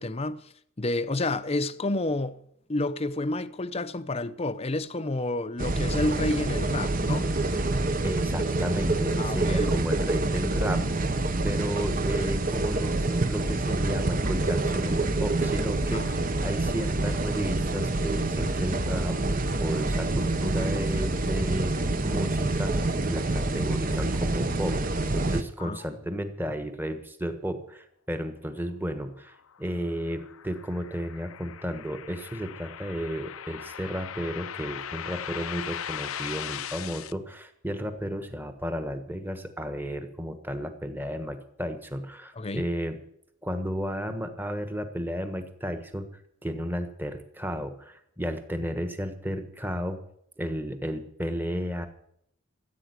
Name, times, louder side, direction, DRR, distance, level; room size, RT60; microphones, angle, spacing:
voice 1, 0.0-2.4 2.7-7.3 9.2-9.7 15.9-16.2 25.6-25.8 42.4-42.7, left 2 dB, 30° left, 0.6 m, -30 dB
sound 1, 5.6-25.4, right 2 dB, 40° right, 0.9 m, -27 dB
voice 2, 8.0-10.8 11.4-21.8 22.0-24.8 25.1-43.0 43.4-46.1 46.4-50.0 50.4-51.9, equal, 10° right, 1.3 m, -33 dB
sound 2, 29.3-37.1, left 9 dB, 80° left, 0.6 m, -39 dB
15.0 x 8.5 x 8.2 m
head